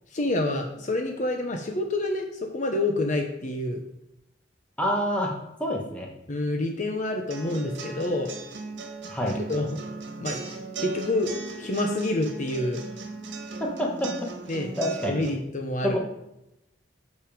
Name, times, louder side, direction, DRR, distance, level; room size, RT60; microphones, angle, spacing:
voice 1, 0.1-3.8 6.3-8.3 9.2-9.7 10.2-10.4 10.8-11.3 11.6-12.8 14.5-14.7 15.1-16.0, left 2 dB, 45° left, 3 dB, 1.0 m, -27 dB
voice 2, 4.8-5.3 5.6-6.1 9.1-9.4 13.6-14.1 14.8-15.2 15.8-16.0, equal, 5° left, -1 dB, 1.5 m, -27 dB
sound 1, 7.3-15.3, right 3 dB, 85° right, 1.4 m, -37 dB
7.6 x 5.4 x 5.2 m, 0.88 s
head